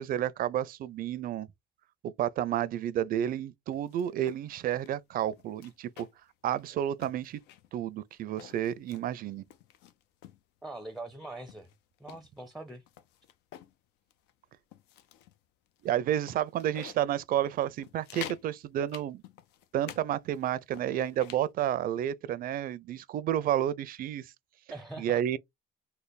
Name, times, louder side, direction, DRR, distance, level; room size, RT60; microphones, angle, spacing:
voice 1, 0.0-1.5 2.0-6.1 6.4-7.4 7.7-9.4 15.8-19.2 19.7-24.3 25.0-25.4, right 11 dB, 60° right, 0.4 m, -31 dB
sound 1, 3.7-4.4 4.8-4.9 5.3-6.3 6.6-6.7 7.0-7.7 8.2-9.0 9.5-10.4 11.0-11.1 11.5-13.7 14.1-14.3 14.7-15.4 15.8-15.9 16.3-17.0 17.4-17.5 17.8-18.5 18.9-20.0 20.3-21.5, left 10 dB, 90° left, 0.5 m, -48 dB
voice 2, 10.6-11.7 12.0-12.8 24.7-25.2, right 2 dB, ahead, 0.5 m, -42 dB
3.2 x 2.1 x 4.0 m
cardioid pair, 110°, 17 cm